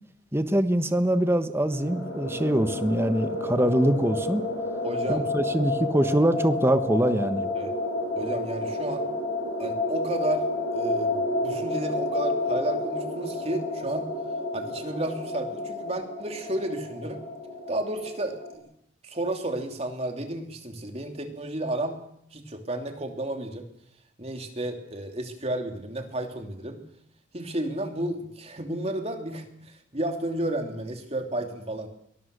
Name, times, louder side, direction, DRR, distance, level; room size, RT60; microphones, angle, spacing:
voice 1, 0.3-4.4 5.1-7.5, right 1 dB, 15° right, 10 dB, 1.2 m, -23 dB
sound 1, 1.6-18.5, left 2 dB, 90° left, 6.0 m, -30 dB
voice 2, 4.8-5.2 7.6-7.7 8.1-9.1 9.6-10.5 10.7-14.1 14.5-17.2 17.7-18.7 19.0-22.0 22.3-23.7 24.2-26.8 27.3-31.9, right 1 dB, 35° right, 5 dB, 2.9 m, -32 dB
23.0 x 20.0 x 6.8 m, 0.72 s
head